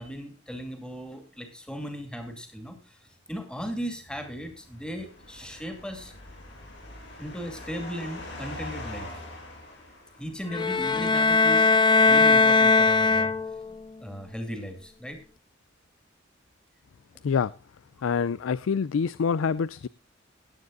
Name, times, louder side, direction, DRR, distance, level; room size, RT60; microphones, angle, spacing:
voice 1, 0.0-3.0 3.3-6.1 7.2-9.1 10.2-11.7 12.0-13.3 14.0-15.2, equal, 5° left, 6 dB, 2.5 m, -37 dB
sound 1, 4.3-10.6, left 1 dB, 60° left, 6.9 m, -43 dB
sound 2, 10.5-13.7, left 4 dB, 25° left, 0.6 m, -20 dB
voice 2, 18.0-19.9, left 6 dB, 90° left, 19 dB, 0.4 m, -26 dB
17.5 x 9.5 x 2.5 m, 0.34 s
head